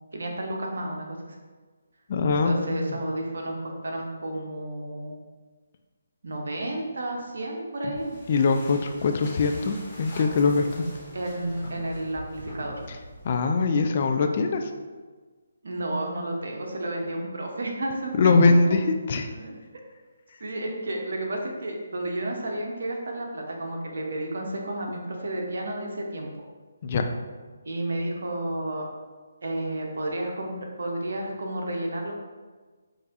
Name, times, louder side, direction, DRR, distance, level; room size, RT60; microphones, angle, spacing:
voice 1, 0.1-1.4 2.3-5.2 6.2-8.1 11.1-12.7 15.6-18.4 19.3-19.5 20.4-26.3 27.6-28.8 29.4-32.1, right 1 dB, 60° right, 0 dB, 0.8 m, -31 dB
voice 2, 2.1-3.0 8.3-10.8 12.9-13.0 13.2-14.7 18.2-19.3 26.8-27.1, left 4 dB, 40° left, 5 dB, 0.3 m, -22 dB
sound 1, 7.9-13.5, equal, 15° left, 1.5 m, -43 dB
6.3 x 2.6 x 2.5 m, 1.4 s
figure-of-eight pair, 145°, 0 cm